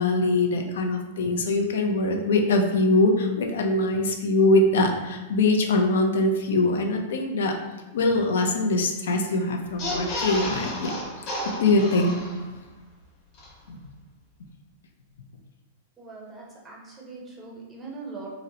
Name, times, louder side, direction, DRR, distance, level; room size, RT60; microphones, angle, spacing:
voice 1, 0.0-7.5 7.9-10.9 11.6-12.2 13.7-13.8, left 2 dB, 85° left, 4 dB, 0.4 m, -22 dB
sound 1, 9.7-12.6 13.0-13.1 13.3-13.5, left 1 dB, 30° left, 0.9 m, -32 dB
voice 2, 16.0-18.3, right 3 dB, 10° right, -3 dB, 0.5 m, -41 dB
3.8 x 2.0 x 2.7 m, 1.1 s
supercardioid pair, 165°, 0 cm